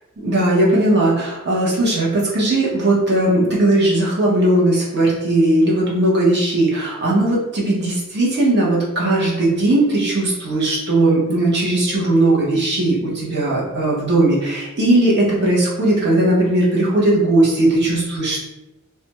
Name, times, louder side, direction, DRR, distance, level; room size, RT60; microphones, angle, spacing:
voice 1, 0.2-18.4, right 1 dB, 50° right, -5 dB, 0.9 m, -18 dB
2.4 x 2.2 x 2.9 m, 0.96 s
head